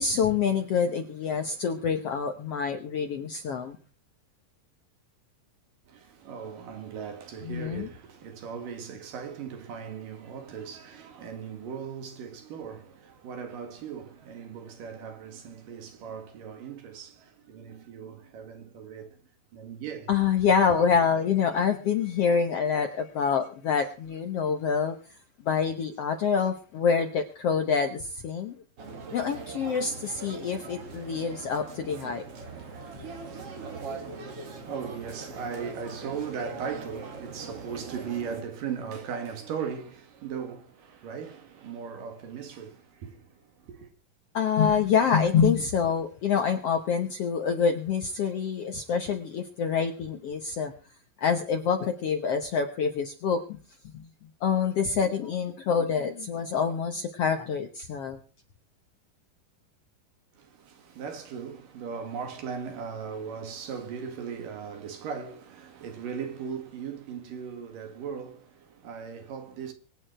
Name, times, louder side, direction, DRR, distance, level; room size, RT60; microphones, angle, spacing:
voice 1, 0.0-3.8 7.4-7.9 20.1-24.9 25.4-28.6 29.1-32.2 44.3-50.7 51.2-53.6 53.9-54.0 54.4-58.2, left 6 dB, 65° left, 1.6 m, -26 dB
voice 2, 5.9-19.2 19.5-20.1 34.4-43.9 60.4-69.7, right 7 dB, 70° right, 3.5 m, -38 dB
sound 1, 28.8-38.4, right 4 dB, 45° right, 3.0 m, -41 dB
24.5 x 8.9 x 4.4 m
omnidirectional pair, 4.0 m